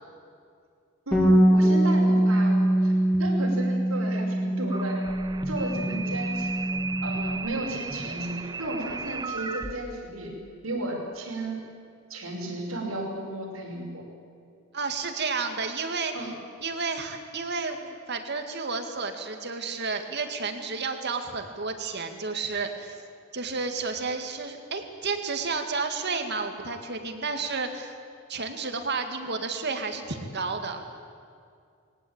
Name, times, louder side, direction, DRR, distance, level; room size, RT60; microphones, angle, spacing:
Bass guitar, 1.1-7.4, right 1 dB, 10° left, 3.8 m, -23 dB
voice 1, 1.1-5.0 5.5-6.7 7.0-10.3 10.6-11.6 12.1-14.1 16.1-16.3, right 1 dB, 85° right, 0 dB, 5.5 m, -34 dB
sound 1, 4.7-9.7, right 4 dB, 20° right, 1.1 m, -35 dB
voice 2, 14.7-16.3 16.6-23.0 23.3-28.0 28.3-30.8, right 4 dB, 55° right, 6 dB, 2.1 m, -31 dB
21.0 x 18.5 x 8.9 m, 2.3 s
head